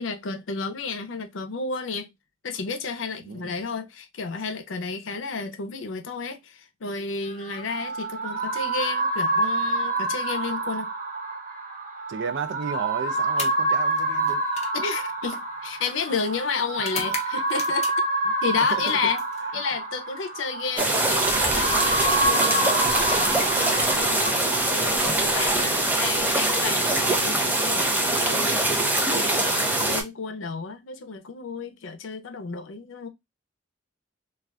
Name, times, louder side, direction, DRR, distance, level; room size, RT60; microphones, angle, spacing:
voice 1, 0.0-2.1 2.4-10.9 14.7-17.9 18.4-19.2 19.5-33.1, left 5 dB, 90° left, 0.5 m, -32 dB
sound 1, 7.3-24.3, right 2 dB, 45° right, 0.9 m, -27 dB
voice 2, 12.1-14.4 18.7-19.0 24.6-24.9, right 6 dB, 65° right, 0.3 m, -33 dB
sound 2, 13.3-18.2 18.6-19.8 21.1-22.9 24.0-24.2 25.0-26.2, left 5 dB, 35° left, 0.6 m, -41 dB
sound 3, 20.8-30.0, right 2 dB, 10° right, 0.5 m, -23 dB
2.4 x 2.3 x 3.2 m
head